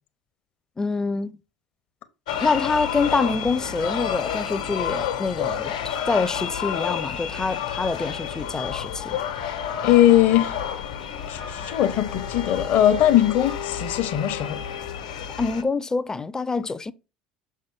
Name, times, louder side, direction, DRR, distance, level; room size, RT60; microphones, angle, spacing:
voice 1, 0.8-1.4 2.4-9.2 15.4-16.9, left 4 dB, 15° left, 0.5 m, -26 dB
sound 1, 2.3-15.6, left 9 dB, 75° left, 1.1 m, -30 dB
voice 2, 9.8-10.6 11.3-14.7, left 12 dB, 50° left, 0.8 m, -20 dB
6.6 x 5.6 x 3.3 m
hypercardioid pair, 70°, 4 cm